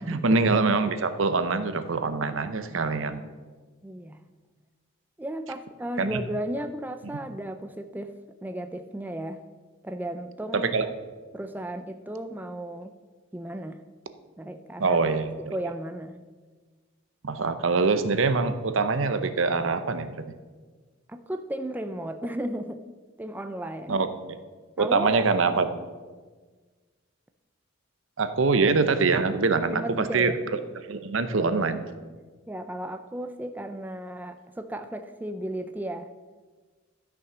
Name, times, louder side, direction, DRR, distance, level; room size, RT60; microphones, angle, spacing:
voice 1, 0.1-3.2 6.0-6.2 10.5-10.9 14.8-15.3 17.2-20.1 23.9-24.1 24.8-25.7 28.2-30.6 30.9-31.8, right 4 dB, 70° right, 10 dB, 0.7 m, -24 dB
voice 2, 3.8-4.2 5.2-8.2 8.4-9.4 9.8-10.7 11.3-12.9 13.3-13.8 14.4-15.0 15.5-16.2 21.1-22.8 23.2-24.1 24.8-25.1 29.7-30.4 31.3-31.7 32.5-36.1, right 1 dB, 10° right, 7 dB, 0.4 m, -34 dB
12.5 x 6.1 x 6.0 m, 1.4 s
head